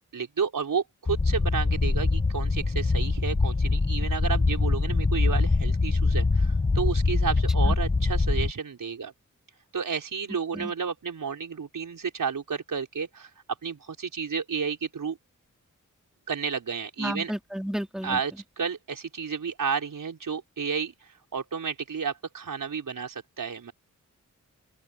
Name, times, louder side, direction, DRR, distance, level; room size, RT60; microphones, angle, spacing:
voice 1, 0.0-9.1 9.7-13.3 13.6-15.2 16.3-17.3 18.0-20.9 21.3-23.7, right 6 dB, 85° right, 5.6 m, -31 dB
sound 1, 1.1-8.5, left 3 dB, 25° left, 1.1 m, -24 dB
voice 2, 17.0-18.2, equal, ahead, 3.8 m, -32 dB
open air
wide cardioid pair, 75°, 32 cm